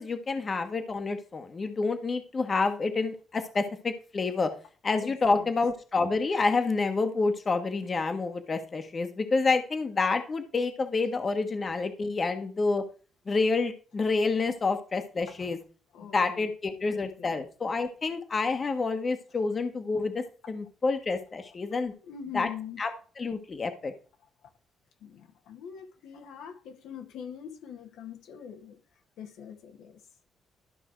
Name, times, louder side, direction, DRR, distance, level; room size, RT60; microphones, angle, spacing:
voice 1, 0.0-4.5 4.8-12.8 13.3-15.6 16.1-21.9 22.3-22.5 22.8-22.9 23.2-23.9, left 3 dB, 35° left, 1.4 m, -28 dB
voice 2, 5.0-5.5 15.9-17.4 22.0-22.8 24.4-24.5 25.0-28.8 29.2-30.0, left 8 dB, 85° left, 1.8 m, -43 dB
13.0 x 5.4 x 4.5 m
cardioid pair, 90°, 0 cm